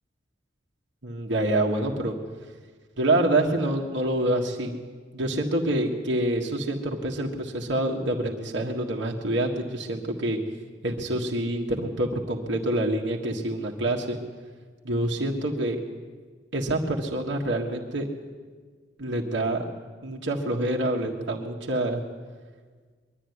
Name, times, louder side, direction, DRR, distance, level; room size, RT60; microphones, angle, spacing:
voice 1, 1.0-2.1 3.0-4.7 5.1-10.4 10.8-14.2 14.8-15.8 16.5-18.1 19.0-19.6 20.0-22.0, right 1 dB, 70° right, -1 dB, 1.7 m, -26 dB
22.0 x 12.0 x 9.7 m, 1.5 s
head